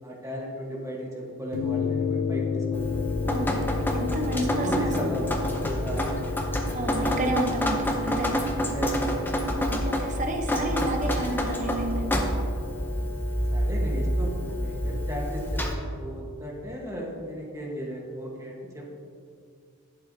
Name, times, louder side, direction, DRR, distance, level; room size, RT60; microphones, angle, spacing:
voice 1, 0.0-3.3 4.3-6.1 8.7-9.2 13.5-18.9, equal, 15° right, -2 dB, 1.1 m, -35 dB
sound 1, 1.5-16.1, left 5 dB, 70° left, 0.3 m, -34 dB
Drip, 2.7-15.7, equal, 10° left, 0.5 m, -28 dB
voice 2, 3.2-5.1 6.7-8.4 9.6-12.0, right 1 dB, 35° right, 3 dB, 0.8 m, -31 dB
11.0 x 8.0 x 2.7 m, 2.3 s
head